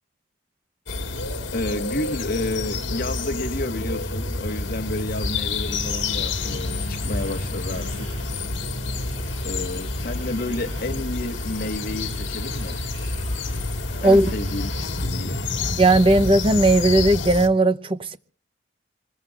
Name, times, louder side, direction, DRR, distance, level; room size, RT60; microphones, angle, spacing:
sound 1, 0.9-17.5, left 3 dB, 70° left, 1.8 m, -28 dB
voice 1, 1.5-8.2 9.4-12.8 14.0-14.7 15.0-15.4, left 1 dB, 50° left, 1.4 m, -30 dB
sound 2, 5.6-14.8, right 2 dB, 65° right, 7.4 m, -45 dB
voice 2, 15.8-18.2, right 1 dB, 25° right, 0.7 m, -17 dB
25.0 x 20.5 x 2.4 m
head